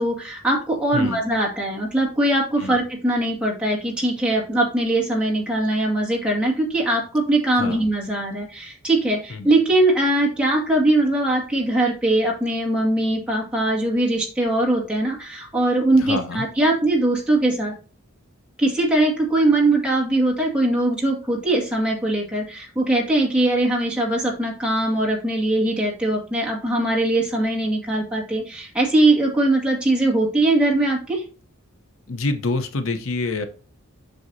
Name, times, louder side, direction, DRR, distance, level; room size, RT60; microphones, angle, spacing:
voice 1, 0.0-17.7 18.6-31.2, right 1 dB, 5° right, -3 dB, 1.9 m, -21 dB
voice 2, 16.0-16.4 32.1-33.4, left 3 dB, 70° left, 8 dB, 0.8 m, -26 dB
7.7 x 6.3 x 2.7 m, 0.37 s
head